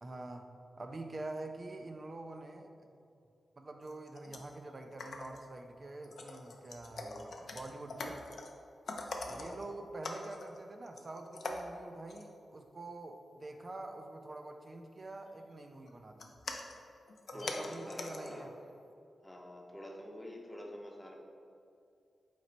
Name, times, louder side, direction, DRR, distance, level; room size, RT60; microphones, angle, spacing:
voice 1, 0.0-2.7 3.6-8.2 9.3-16.3 17.3-18.5, right 2 dB, 45° right, 4 dB, 0.3 m, -46 dB
sound 1, 3.8-4.5 4.8-5.6 6.0-8.6 8.9-9.7 10.0-10.6 10.9-11.8 12.1-12.3 15.2-15.3 15.9-18.4 18.8-18.9, left 2 dB, 70° left, 0.4 m, -43 dB
voice 2, 6.9-7.2 9.2-9.6 17.3-18.5 19.2-21.1, equal, 15° left, 0 dB, 0.7 m, -46 dB
4.0 x 3.0 x 3.9 m, 2.5 s
cardioid pair, 60°, 0 cm